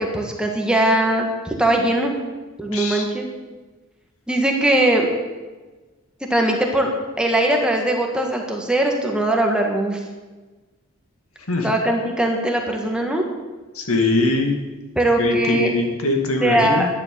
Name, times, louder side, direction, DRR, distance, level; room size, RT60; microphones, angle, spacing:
voice 1, 0.0-2.1 2.6-3.3 4.3-5.1 6.3-6.9 7.2-10.0 11.6-13.2 15.0-15.7 16.4-16.9, right 1 dB, 5° right, 1 dB, 1.7 m, -20 dB
voice 2, 2.7-3.1 11.5-11.7 13.7-14.5 15.2-16.9, left 2 dB, 85° left, 3 dB, 2.2 m, -21 dB
11.5 x 10.5 x 6.9 m, 1.3 s
head